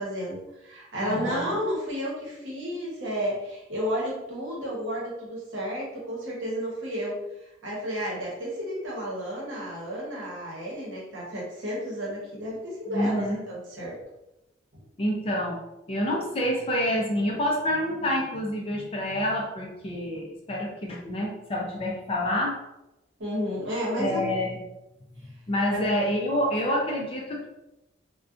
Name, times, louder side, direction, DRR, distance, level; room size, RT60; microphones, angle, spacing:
voice 1, 0.0-7.2 7.6-14.0 14.7-14.8 23.2-24.3 25.7-25.8, equal, 65° right, -4 dB, 0.9 m, -32 dB
voice 2, 1.0-1.6 12.9-13.4 15.0-15.6 15.9-22.6 24.0-24.6 25.1-27.4, equal, 30° left, -1 dB, 0.4 m, -27 dB
2.5 x 2.2 x 2.4 m, 0.93 s
head